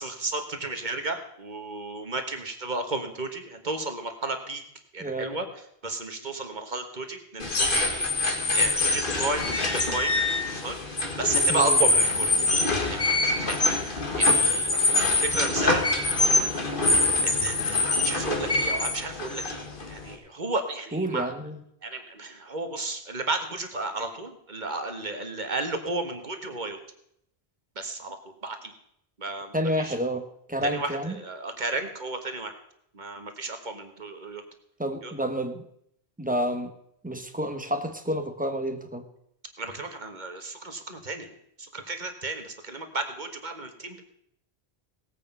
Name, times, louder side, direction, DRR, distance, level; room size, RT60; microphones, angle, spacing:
voice 1, 0.0-4.6 4.9-5.5 5.8-10.2 10.5-10.8 11.2-12.4 12.7-15.8 17.2-21.3 21.8-26.8 27.8-28.2 28.4-28.7 29.2-29.9 30.6-32.6 32.9-34.4 35.0-35.1 39.6-41.3 41.7-44.0, right 3 dB, 45° right, 6 dB, 1.6 m, -33 dB
voice 2, 5.0-5.4 11.5-11.8 20.9-21.6 29.5-31.2 34.8-35.6 36.2-36.7 37.0-39.0, equal, 10° right, 6 dB, 1.2 m, -29 dB
sound 1, 7.4-20.1, left 2 dB, 50° left, 1.9 m, -24 dB
18.0 x 8.3 x 5.5 m, 0.73 s
omnidirectional pair, 1.1 m